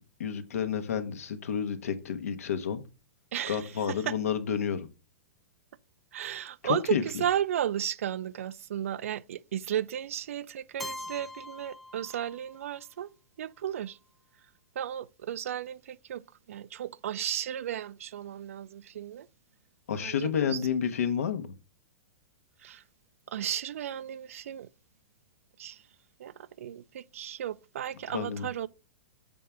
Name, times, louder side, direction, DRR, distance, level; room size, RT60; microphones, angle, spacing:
voice 1, 0.2-2.8 3.5-4.9 6.6-7.0 19.9-21.5 28.1-28.5, left 7 dB, 85° left, 1.2 m, -30 dB
voice 2, 3.3-4.2 6.1-13.1 13.4-14.0 14.8-19.3 20.0-20.6 22.6-22.8 23.3-24.7 25.6-25.8 26.2-28.7, right 10 dB, 75° right, 0.5 m, -34 dB
Keyboard (musical), 10.8-12.7, left 1 dB, ahead, 0.3 m, -42 dB
7.5 x 3.7 x 5.7 m
hypercardioid pair, 160°, 8 cm